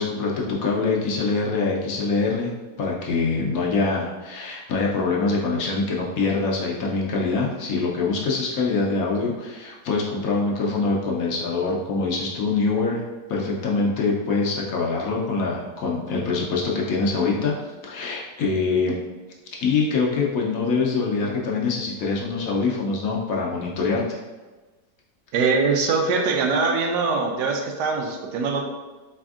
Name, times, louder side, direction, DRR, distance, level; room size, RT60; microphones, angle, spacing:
voice 1, 0.0-2.5 2.8-13.0 13.3-17.5 17.8-18.9 19.5-24.2, left 4 dB, 65° left, -2 dB, 1.0 m, -24 dB
voice 2, 25.3-28.6, right 4 dB, 85° right, 3 dB, 1.2 m, -22 dB
4.2 x 3.4 x 2.4 m, 1.3 s
omnidirectional pair, 1.7 m